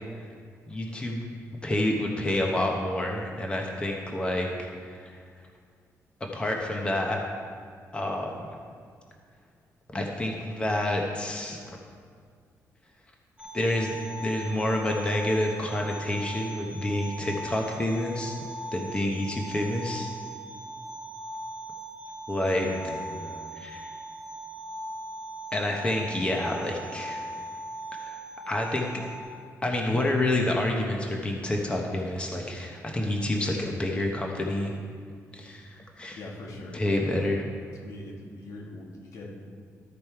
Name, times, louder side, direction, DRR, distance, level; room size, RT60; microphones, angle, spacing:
voice 1, 0.7-1.2 1.6-5.2 6.3-7.2 7.9-8.5 9.9-11.6 13.5-13.9 14.2-18.3 18.7-20.1 22.3-22.7 23.6-23.9 25.5-27.2 27.9-28.2 28.5-28.9 29.6-34.7 35.3-36.2 36.7-37.4, left 1 dB, 20° left, 1 dB, 0.9 m, -28 dB
sound 1, 13.4-29.2, right 1 dB, 15° right, 1.5 m, -40 dB
voice 2, 22.4-23.5 36.1-37.0 37.7-39.3, left 2 dB, 80° left, -2 dB, 1.8 m, -42 dB
13.0 x 5.2 x 4.6 m, 2.1 s
cardioid pair, 125°, 6 cm